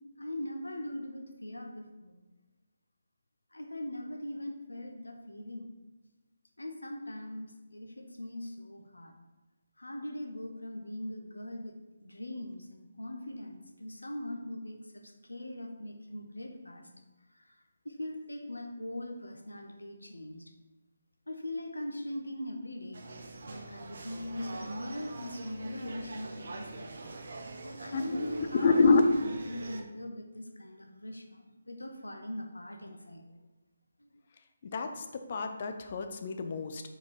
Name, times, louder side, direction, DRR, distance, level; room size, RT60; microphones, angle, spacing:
voice 1, 0.2-2.2 3.5-5.7 6.6-9.2 9.8-16.9 17.3-17.5 17.8-20.5 21.3-23.1 23.5-26.9 27.4-33.3 34.0-34.2, left 1 dB, 80° left, 4 dB, 0.9 m, -41 dB
sound 1, 22.9-29.8, right 2 dB, 55° right, 0.7 m, -44 dB
voice 2, 28.6-29.0 34.6-36.8, left 4 dB, 40° left, 6 dB, 0.6 m, -27 dB
4.8 x 4.6 x 4.8 m, 1.1 s
figure-of-eight pair, 150°, 0 cm